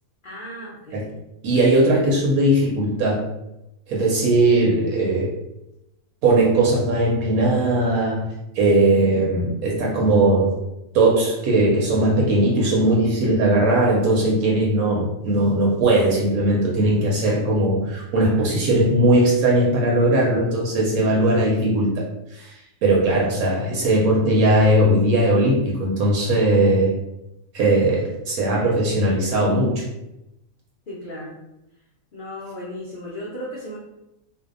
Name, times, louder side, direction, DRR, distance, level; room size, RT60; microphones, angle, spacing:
voice 1, 0.2-1.2 30.9-31.4 32.1-33.8, equal, 80° left, -6 dB, 0.4 m, -35 dB
voice 2, 1.4-3.3 3.9-5.3 6.2-10.6 10.9-27.0 27.5-29.9, right 1 dB, 75° right, -3 dB, 1.0 m, -19 dB
2.6 x 2.1 x 2.4 m, 0.90 s
omnidirectional pair, 1.6 m